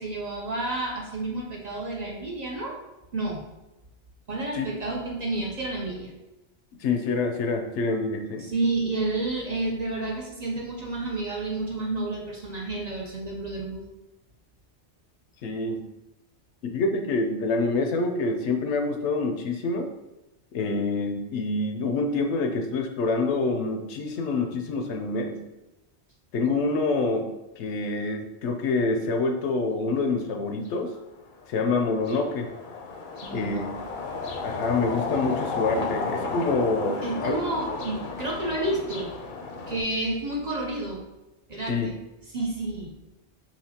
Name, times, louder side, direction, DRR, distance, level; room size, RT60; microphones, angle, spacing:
voice 1, 0.0-2.8 3.1-3.5 4.3-6.1 8.4-13.9 33.2-34.0 37.0-39.1 39.7-41.1 41.5-41.9 42.3-43.0, right 2 dB, 45° right, -2 dB, 0.7 m, -30 dB
voice 2, 6.8-8.5 15.4-15.8 16.6-19.9 20.5-25.4 26.3-27.3 27.6-31.0 31.5-32.5 33.3-33.6 34.4-37.4 41.7-41.9, left 3 dB, 85° left, 5 dB, 0.9 m, -26 dB
sound 1, 30.6-30.7 31.3-39.8, left 4 dB, 55° left, 0.7 m, -33 dB
4.9 x 2.9 x 2.8 m, 1.0 s
omnidirectional pair, 1.2 m